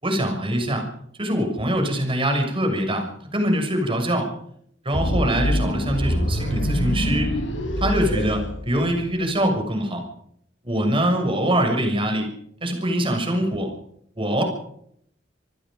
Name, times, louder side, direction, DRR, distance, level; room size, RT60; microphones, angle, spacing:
voice 1, 0.0-0.9 1.2-3.1 3.3-4.3 4.8-7.4 7.8-10.0 10.6-12.3 12.6-13.7 14.2-14.4, right 1 dB, 30° right, 4 dB, 6.5 m, -23 dB
sound 1, 4.9-9.2, equal, 85° left, 5.5 m, -25 dB
27.5 x 20.0 x 5.2 m, 0.69 s
head